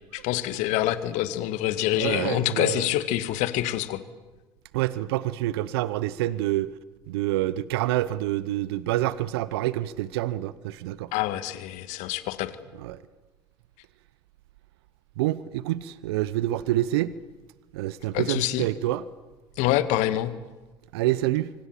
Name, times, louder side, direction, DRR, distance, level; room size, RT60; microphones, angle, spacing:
voice 1, 0.1-4.0 11.1-12.6 18.1-18.7 19.6-20.3, left 14 dB, 60° left, 1.8 m, -26 dB
voice 2, 1.9-2.8 4.7-6.7 7.1-11.1 12.8-13.0 15.2-17.2 17.7-19.0 20.9-21.5, right 15 dB, 70° right, 0.8 m, -27 dB
28.0 x 25.0 x 7.5 m
hypercardioid pair, 65°, 14 cm